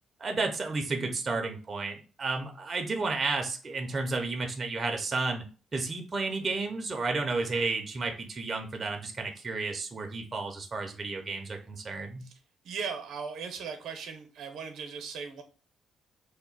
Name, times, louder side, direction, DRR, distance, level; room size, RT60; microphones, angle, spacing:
voice 1, 0.2-5.4 5.7-12.3, right 3 dB, 35° right, 4 dB, 0.5 m, -32 dB
voice 2, 12.6-15.4, right 6 dB, 80° right, 6 dB, 0.7 m, -38 dB
2.8 x 2.1 x 3.8 m, 0.36 s
cardioid pair, 90°, 0 cm